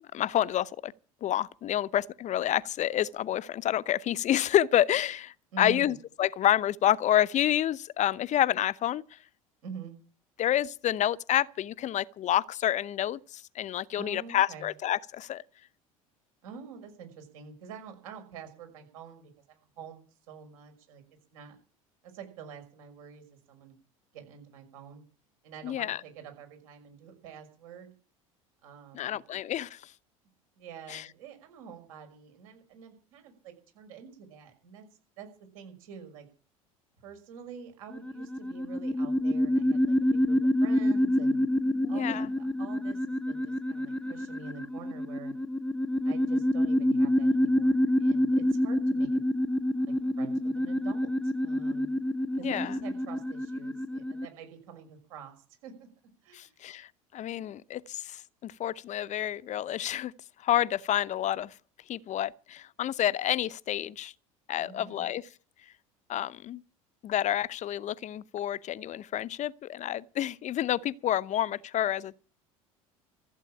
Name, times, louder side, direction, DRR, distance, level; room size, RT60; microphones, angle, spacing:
voice 1, 0.1-0.9 1.2-9.2 10.4-15.4 25.6-26.0 28.9-29.9 30.9-31.1 41.8-42.3 52.4-52.7 56.3-60.1 60.4-61.5 61.9-64.1 64.5-65.2 66.1-66.6 67.0-72.2, left 12 dB, 40° left, 0.7 m, -29 dB
voice 2, 5.5-5.9 9.6-10.0 14.0-14.7 16.4-21.0 21.3-21.6 22.0-23.8 24.1-25.0 25.4-27.9 28.6-29.2 30.6-34.9 35.2-35.3 35.5-36.3 37.0-41.4 41.9-45.3 46.0-49.2 50.2-52.0 52.4-55.3 55.6-55.9 56.2-56.6 64.6-65.1, right 7 dB, 75° right, 5.7 m, -46 dB
sound 1, 37.9-54.3, left 1 dB, 5° left, 0.8 m, -27 dB
15.0 x 8.3 x 10.0 m
hypercardioid pair, 70°, 18 cm